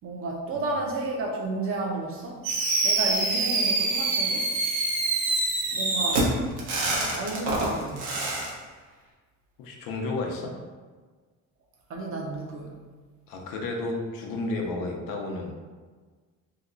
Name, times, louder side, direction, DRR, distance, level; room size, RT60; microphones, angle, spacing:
voice 1, 0.0-2.4 2.8-4.5 5.7-6.3 7.2-8.1 11.9-12.8, right 2 dB, 40° right, 0 dB, 0.6 m, -32 dB
Fireworks, 2.4-8.5, right 2 dB, 90° right, 0.9 m, -25 dB
voice 2, 9.6-10.6 13.3-15.5, left 2 dB, 80° left, 1 dB, 0.7 m, -32 dB
2.8 x 2.2 x 3.7 m, 1.4 s
cardioid pair, 160°, 33 cm